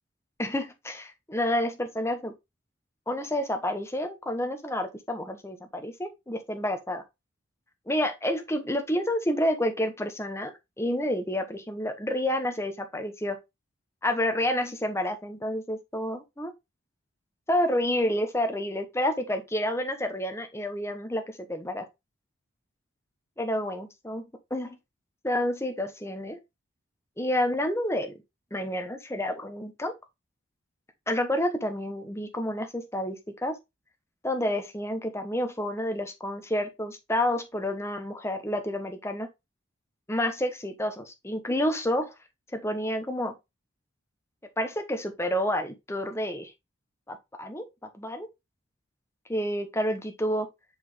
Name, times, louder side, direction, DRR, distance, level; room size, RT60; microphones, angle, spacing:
voice 1, 0.4-2.3 3.1-7.0 7.9-13.4 14.0-16.5 17.5-21.8 23.4-24.2 24.5-24.7 25.2-26.4 27.2-28.1 28.5-29.9 31.1-33.6 34.2-39.3 40.1-42.1 42.5-43.3 44.6-46.5 47.1-47.7 47.9-48.3 49.3-50.5, left 1 dB, 15° left, 1.0 m, -29 dB
6.1 x 4.9 x 3.3 m
head